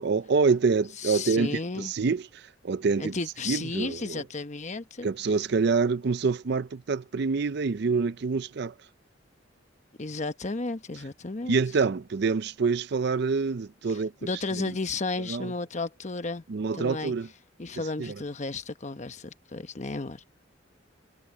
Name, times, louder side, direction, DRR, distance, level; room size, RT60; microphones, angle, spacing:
voice 1, 0.0-3.2 3.5-4.2 5.0-8.7 11.5-14.1 15.3-15.5 16.5-17.3 18.0-18.1, right 4 dB, 55° right, 0.5 m, -26 dB
voice 2, 1.0-1.9 3.0-5.1 10.0-11.5 13.9-16.4 16.7-17.1 17.6-20.3, left 3 dB, 35° left, 0.9 m, -33 dB
head